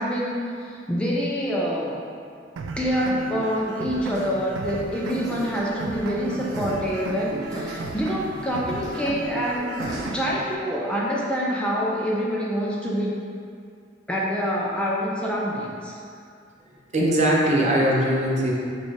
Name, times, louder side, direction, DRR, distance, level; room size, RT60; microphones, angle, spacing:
voice 1, 0.0-2.0 2.8-9.7 10.1-13.2 14.1-15.9, equal, 5° left, -5 dB, 0.4 m, -26 dB
sound 1, 2.6-10.6, right 3 dB, 90° right, 0.3 m, -35 dB
sound 2, 4.1-10.1, right 1 dB, 20° right, 1.2 m, -36 dB
voice 2, 16.9-18.5, right 1 dB, 40° right, -3 dB, 0.6 m, -20 dB
6.2 x 2.4 x 3.2 m, 2.3 s
head